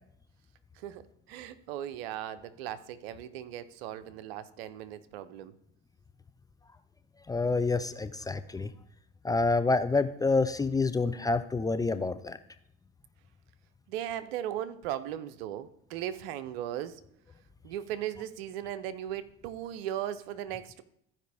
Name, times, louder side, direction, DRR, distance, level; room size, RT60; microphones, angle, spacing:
voice 1, 0.8-5.5 13.9-17.0 17.6-20.8, right 11 dB, 70° right, 13 dB, 0.8 m, -37 dB
voice 2, 7.3-8.7 9.2-12.4, left 3 dB, 10° left, 10 dB, 0.4 m, -27 dB
14.5 x 5.1 x 3.5 m, 0.76 s
hypercardioid pair, 85°, 31 cm